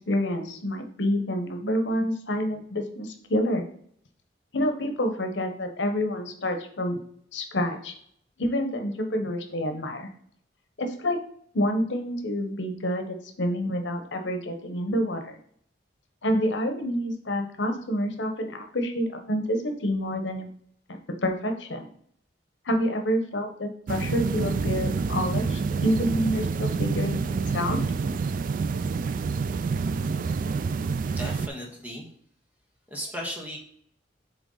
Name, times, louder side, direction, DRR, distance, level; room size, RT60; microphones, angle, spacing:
voice 1, 0.1-3.6 4.5-7.0 7.3-7.9 8.4-10.1 10.8-11.2 11.5-15.4 16.2-20.5 21.2-21.8 22.6-27.8, equal, 85° left, 5 dB, 1.0 m, -28 dB
sound 1, 23.9-31.5, right 4 dB, 50° right, 0.3 m, -27 dB
voice 2, 31.2-32.1 32.9-33.6, equal, 10° right, -1 dB, 1.5 m, -35 dB
7.9 x 3.5 x 3.9 m, 0.63 s
head